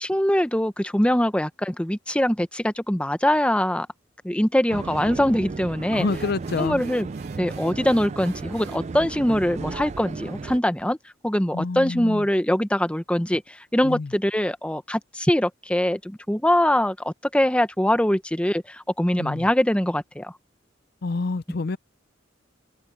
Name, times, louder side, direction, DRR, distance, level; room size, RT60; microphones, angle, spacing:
voice 1, 0.0-3.9 4.2-6.1 6.6-7.1 7.4-11.0 11.2-20.3, left 1 dB, 5° left, 0.9 m, -23 dB
sound 1, 4.7-10.6, right 4 dB, 35° right, 0.4 m, -34 dB
voice 2, 5.9-6.8 11.5-12.3 13.8-14.1 19.2-19.5 21.0-21.8, left 3 dB, 55° left, 0.5 m, -28 dB
sound 2, 6.0-8.9, right 4 dB, 60° right, 2.4 m, -45 dB
head